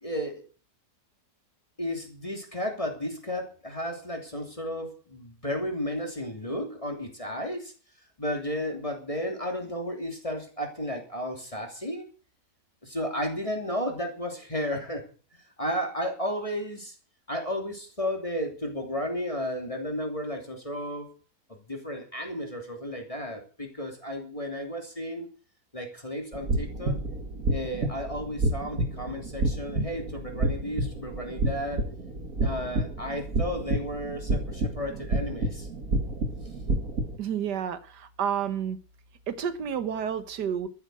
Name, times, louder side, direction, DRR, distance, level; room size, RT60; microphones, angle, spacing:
voice 1, 0.0-0.4 1.8-7.7 8.2-12.1 12.8-15.1 15.6-16.9 17.3-21.1 21.5-25.3 25.7-27.0 27.5-31.8 32.4-35.7, equal, 20° left, 3.0 m, -33 dB
sound 1, 26.3-37.2, right 2 dB, 55° right, 2.3 m, -30 dB
voice 2, 37.2-38.8 39.3-40.7, right 8 dB, 70° right, 1.9 m, -30 dB
13.0 x 9.1 x 7.8 m
omnidirectional pair, 1.9 m